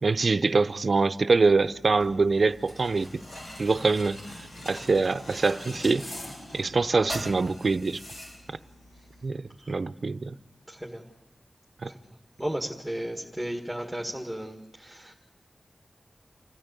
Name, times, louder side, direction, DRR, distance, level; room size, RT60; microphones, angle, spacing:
voice 1, 0.0-3.2 3.6-4.2 4.7-6.1 6.5-8.0 9.2-10.3 11.8-11.9, right 4 dB, 60° right, 0.6 m, -24 dB
sound 1, 1.6-9.2, left 1 dB, 75° left, 7.3 m, -42 dB
voice 2, 10.7-11.0 11.8-15.1, right 1 dB, ahead, 1.9 m, -35 dB
27.5 x 14.5 x 8.2 m
wide cardioid pair, 90°, 0 cm